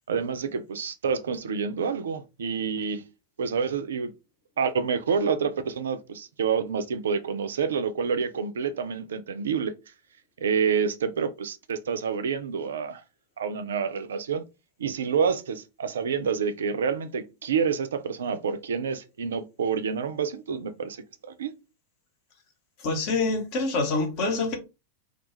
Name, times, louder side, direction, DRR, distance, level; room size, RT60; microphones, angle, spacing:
voice 1, 0.1-3.0 3.4-4.1 4.6-9.7 10.4-13.0 13.4-14.4 14.8-21.0 21.3-21.5, right 6 dB, 65° right, 0.3 m, -28 dB
voice 2, 22.8-24.6, left 3 dB, 45° left, 0.9 m, -26 dB
2.4 x 2.2 x 2.9 m
figure-of-eight pair, 90°, 0 cm